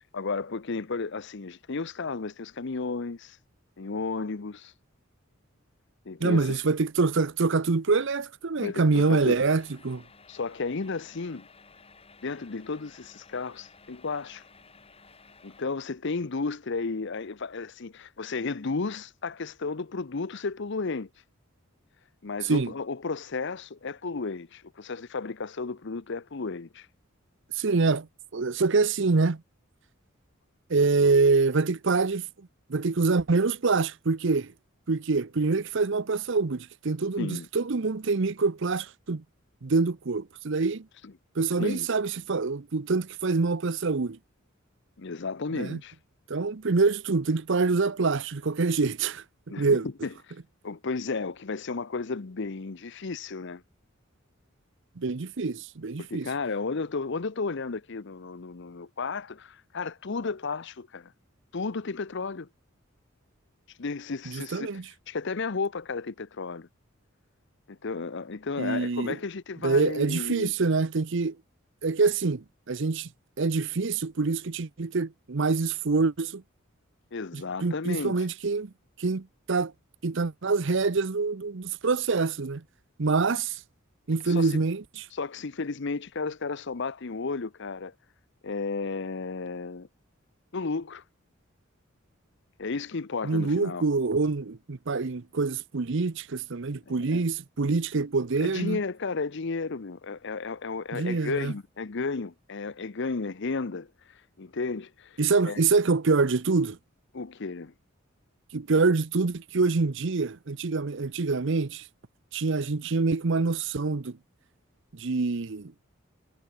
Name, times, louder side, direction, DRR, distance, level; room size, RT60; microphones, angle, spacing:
voice 1, 0.1-3.4 3.8-4.7 6.1-6.6 8.6-9.4 10.3-11.5 12.2-14.4 15.4-21.1 22.2-26.9 37.2-37.5 41.0-41.1 41.6-41.9 45.0-45.9 49.5-50.1 50.6-53.6 56.0-61.1 61.5-62.5 63.8-64.7 65.1-66.7 67.7-70.5 77.1-78.2 84.2-84.6 85.1-87.9 88.4-89.9 90.5-91.0 92.6-93.9 96.9-97.3 98.4-103.9 104.4-105.6 107.1-107.7, left 4 dB, 60° left, 0.8 m, -33 dB
voice 2, 6.2-10.0 22.4-22.7 27.5-28.1 28.3-29.4 30.7-32.3 32.7-34.5 34.9-39.2 39.6-40.8 41.4-44.2 45.5-45.8 46.3-49.2 49.6-49.9 55.0-56.3 64.3-64.8 68.6-69.2 69.6-71.4 71.8-73.1 73.4-76.4 77.3-78.7 79.0-79.7 80.0-82.6 83.0-83.6 84.1-84.8 93.2-98.8 100.9-101.5 105.2-106.8 108.5-111.8 112.3-114.2 114.9-115.7, right 4 dB, 65° right, 0.7 m, -25 dB
sound 1, 8.9-15.6, left 4 dB, 30° left, 3.4 m, -55 dB
head